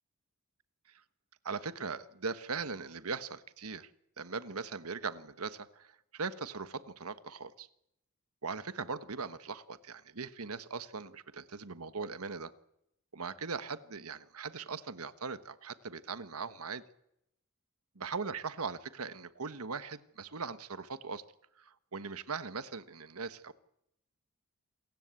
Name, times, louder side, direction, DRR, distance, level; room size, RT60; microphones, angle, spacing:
voice 1, 1.4-3.9 4.2-7.7 8.4-12.5 13.1-16.8 17.9-21.2 21.6-23.5, right 4 dB, 85° right, 13 dB, 1.3 m, -40 dB
28.0 x 15.5 x 8.3 m, 0.80 s
head